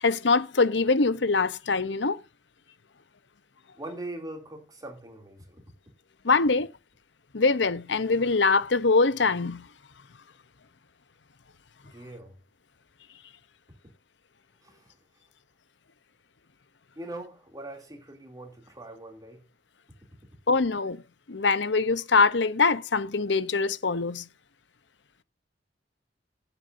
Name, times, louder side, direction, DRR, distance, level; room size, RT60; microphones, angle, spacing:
voice 1, 0.0-2.2 6.2-6.7 7.3-9.7 20.5-21.0 21.3-24.3, left 4 dB, 75° left, 0.8 m, -23 dB
voice 2, 3.7-5.6 11.8-12.4 14.6-15.0 16.9-19.5, right 1 dB, 20° right, 2.9 m, -41 dB
16.5 x 8.0 x 2.7 m
head